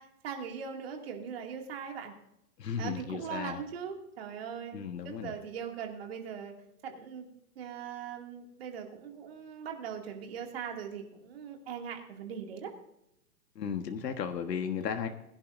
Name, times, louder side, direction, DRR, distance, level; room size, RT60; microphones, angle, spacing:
voice 1, 0.0-2.1 2.8-4.7 5.0-6.6 6.8-7.2 7.6-12.7, right 7 dB, 40° right, 2 dB, 2.4 m, -40 dB
voice 2, 2.6-3.6 4.7-5.3 13.5-15.1, left 7 dB, 90° left, 5 dB, 1.5 m, -35 dB
22.0 x 11.0 x 2.6 m, 0.81 s
hypercardioid pair, 175°, 47 cm